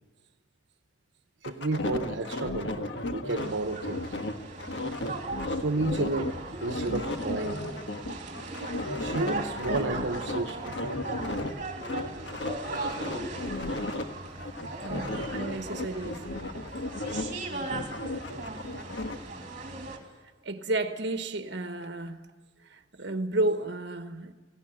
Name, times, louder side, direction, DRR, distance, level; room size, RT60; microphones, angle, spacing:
sound 1, 1.4-6.3 6.6-11.5 11.8-14.0 14.4-17.4 17.6-19.2, left 2 dB, 75° left, 1.5 m, -34 dB
voice 1, 1.4-4.2 5.6-7.7 9.0-10.8, right 3 dB, 85° right, 1.0 m, -32 dB
sound 2, 3.4-20.0, right 2 dB, 45° right, 2.6 m, -38 dB
voice 2, 14.8-16.3 17.5-17.9 19.8-20.0 20.4-22.2 22.7-24.3, right 2 dB, 70° right, 1.2 m, -32 dB
18.0 x 16.5 x 9.0 m
head